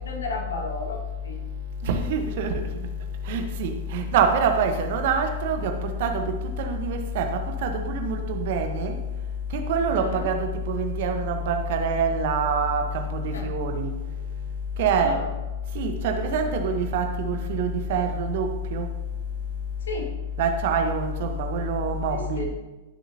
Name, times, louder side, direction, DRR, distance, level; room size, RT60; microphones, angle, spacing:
voice 1, 0.0-1.4 9.9-10.3 13.3-13.5 15.0-15.3 19.9-20.1 22.1-22.5, left 2 dB, 70° left, 2 dB, 1.9 m, -34 dB
voice 2, 1.8-2.6 3.3-9.0 9.5-13.9 14.8-15.2 15.7-18.9 20.4-22.5, right 4 dB, 50° right, 5 dB, 1.3 m, -25 dB
16.0 x 7.2 x 2.9 m, 1.1 s
figure-of-eight pair, 100°, 0 cm